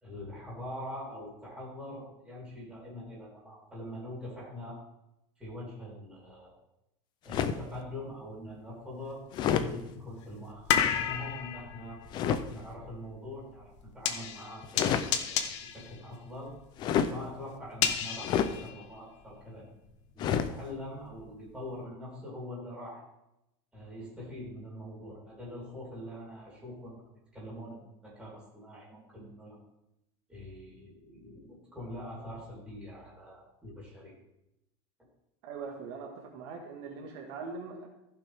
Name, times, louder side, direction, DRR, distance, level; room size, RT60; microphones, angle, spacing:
voice 1, 0.0-4.8 5.4-6.5 7.2-12.0 12.5-15.0 15.3-16.5 17.0-19.6 20.1-23.0 23.7-29.6 30.3-34.1, left 1 dB, 5° right, -6 dB, 3.9 m, -43 dB
sound 1, 7.3-7.7 9.3-9.7 12.1-12.4 14.6-15.1 16.8-17.2 18.2-18.6 20.2-20.5, left 8 dB, 30° left, 0.5 m, -28 dB
sound 2, 8.6-8.7 9.3-19.5 19.8-21.4 21.8-21.9, left 9 dB, 80° left, 1.1 m, -34 dB
voice 2, 35.4-37.9, right 4 dB, 65° right, 0 dB, 1.7 m, -41 dB
15.0 x 5.8 x 3.6 m, 0.86 s
supercardioid pair, 165°, 15 cm